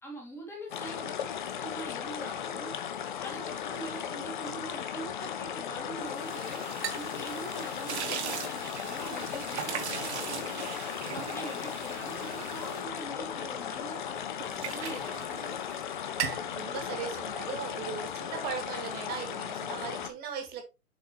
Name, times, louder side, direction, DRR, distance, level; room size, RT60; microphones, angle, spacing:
voice 1, 0.0-2.7 3.2-10.1 11.1-15.6, right 1 dB, 5° left, 2.0 m, -44 dB
sound 1, 0.7-20.1, left 9 dB, 35° left, 0.7 m, -36 dB
sound 2, 6.0-13.8 14.2-16.5, right 8 dB, 45° right, 1.4 m, -39 dB
voice 2, 16.5-20.6, right 7 dB, 20° right, 2.1 m, -38 dB
7.4 x 5.4 x 3.0 m
hypercardioid pair, 135°, 46 cm